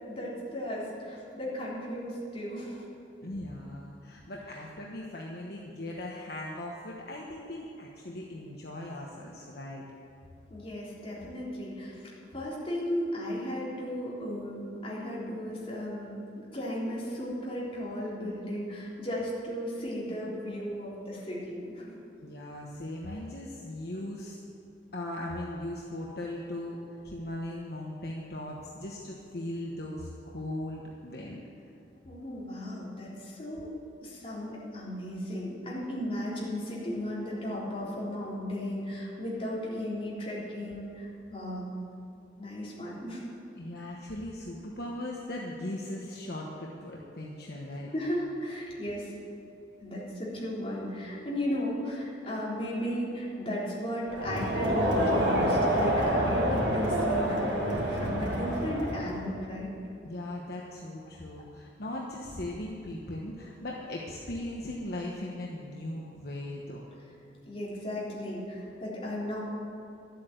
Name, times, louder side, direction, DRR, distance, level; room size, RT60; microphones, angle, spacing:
voice 1, 0.0-2.8 10.5-12.0 12.3-21.8 32.1-33.7 34.0-41.7 42.4-43.3 47.9-49.1 49.8-59.7 67.5-69.4, equal, 30° left, -7 dB, 3.5 m, -35 dB
voice 2, 3.2-9.8 22.2-24.4 24.9-26.8 27.0-31.4 43.6-47.9 60.0-66.8, left 1 dB, 60° left, -2 dB, 1.1 m, -38 dB
Crowd, 54.1-59.3, equal, 70° right, 2.8 m, -27 dB
12.0 x 8.4 x 8.0 m, 2.7 s
head